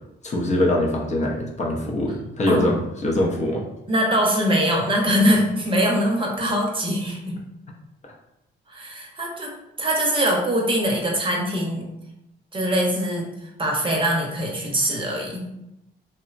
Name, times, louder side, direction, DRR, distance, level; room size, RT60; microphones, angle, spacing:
voice 1, 0.2-3.6 8.0-8.2, left 1 dB, 35° left, -1 dB, 0.5 m, -23 dB
voice 2, 3.9-7.4 8.7-9.5 9.8-11.9 12.5-15.6, equal, 25° right, -1 dB, 0.7 m, -22 dB
2.9 x 2.0 x 2.4 m, 0.87 s
cardioid pair, 90°, 20 cm